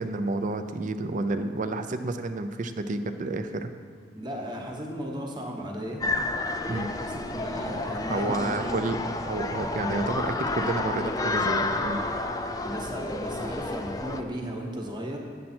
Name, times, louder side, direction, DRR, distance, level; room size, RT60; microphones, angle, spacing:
voice 1, 0.0-3.7 6.7-6.9 8.1-12.0, right 2 dB, 40° right, 9 dB, 0.4 m, -30 dB
voice 2, 4.1-6.0 6.9-8.8 12.6-15.2, equal, 25° right, 1 dB, 1.0 m, -35 dB
sound 1, 6.0-14.2, left 2 dB, 20° left, 0.4 m, -30 dB
8.6 x 7.5 x 4.3 m, 2.1 s
head